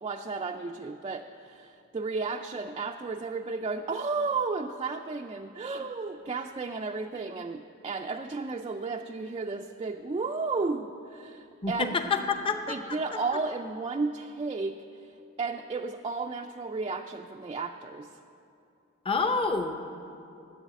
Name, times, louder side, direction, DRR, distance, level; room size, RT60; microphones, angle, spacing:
voice 1, 0.0-11.9 12.7-18.1, right 4 dB, 25° right, 3 dB, 0.3 m, -33 dB
voice 2, 11.6-12.8 19.0-19.8, left 4 dB, 25° left, 6 dB, 0.7 m, -27 dB
11.5 x 7.7 x 10.0 m, 2.6 s
head